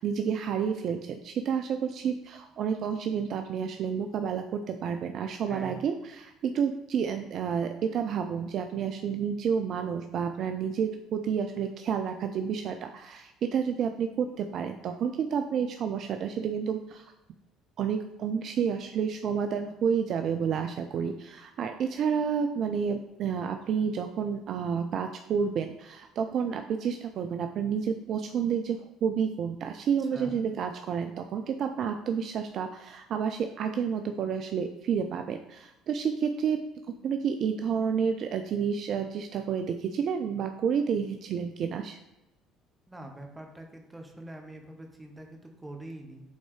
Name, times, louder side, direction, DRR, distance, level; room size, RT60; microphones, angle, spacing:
voice 1, 0.0-17.1 17.8-36.6 37.0-42.0, right 7 dB, 50° right, 6 dB, 0.4 m, -30 dB
voice 2, 5.5-5.8 30.1-30.4 42.9-46.2, right 1 dB, 10° right, 3 dB, 1.4 m, -44 dB
8.0 x 3.9 x 3.3 m, 0.98 s
figure-of-eight pair, 55°, 0 cm